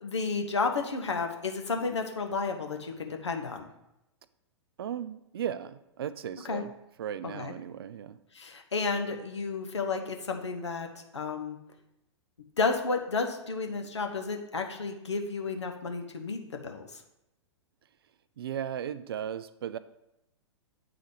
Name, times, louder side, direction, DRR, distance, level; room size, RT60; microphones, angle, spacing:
voice 1, 0.0-3.7 6.5-6.6 7.3-7.5 8.3-10.9 11.1-11.6 12.6-16.8, left 4 dB, 75° left, 3 dB, 0.9 m, -32 dB
voice 2, 4.8-6.7 7.0-8.2 18.4-19.8, right 9 dB, 55° right, 14 dB, 0.4 m, -36 dB
8.7 x 3.9 x 4.9 m, 0.87 s
figure-of-eight pair, 105°, 15 cm